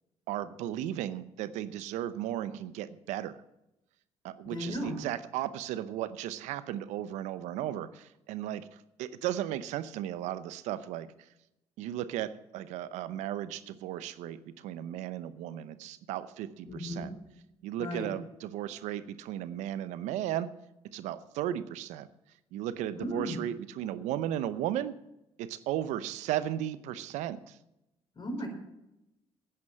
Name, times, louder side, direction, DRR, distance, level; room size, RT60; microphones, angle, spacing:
voice 1, 0.3-3.4 4.2-11.1 11.8-17.1 17.6-20.5 20.9-22.1 22.5-25.0 25.4-27.6, right 12 dB, 85° right, 15 dB, 0.8 m, -35 dB
voice 2, 4.4-5.0 16.6-17.1 17.8-18.1 23.0-23.4 28.1-28.5, equal, 40° left, 3 dB, 4.6 m, -35 dB
10.5 x 9.7 x 7.5 m, 0.90 s
supercardioid pair, 75°, 12 cm